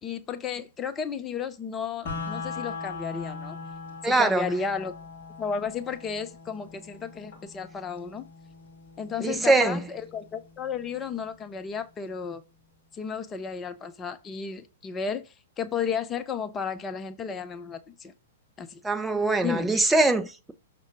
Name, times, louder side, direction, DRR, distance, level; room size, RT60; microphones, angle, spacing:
voice 1, 0.0-3.6 4.0-4.9 5.4-8.2 9.0-12.4 12.9-18.1 18.6-18.8 19.4-19.7, left 6 dB, 20° left, 0.6 m, -33 dB
sound 1, 2.1-12.0, left 4 dB, 45° left, 2.3 m, -41 dB
voice 2, 4.0-4.4 9.2-9.8 18.8-20.5, right 2 dB, 5° right, 0.9 m, -22 dB
6.5 x 3.7 x 4.7 m
figure-of-eight pair, 105°, 0 cm